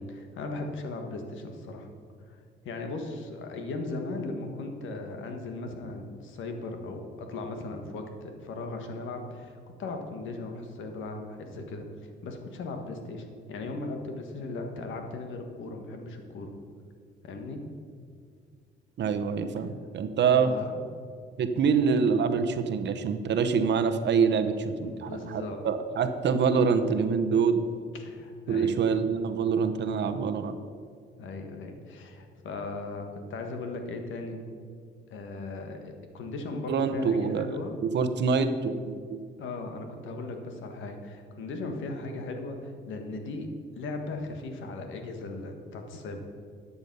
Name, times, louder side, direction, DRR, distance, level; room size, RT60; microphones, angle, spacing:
voice 1, 0.0-1.9 2.3-2.4 2.6-16.5 17.2-17.6 20.3-20.8 24.8-25.6 27.9-28.8 31.2-34.4 35.1-37.8 39.4-43.5 43.7-46.2, left 2 dB, 75° left, 4 dB, 1.5 m, -37 dB
voice 2, 19.0-20.5 21.4-27.6 28.5-30.6 36.7-37.5 37.9-39.2, right 6 dB, 60° right, 8 dB, 0.9 m, -25 dB
12.0 x 7.0 x 5.4 m, 2.1 s
cardioid pair, 90°, 20 cm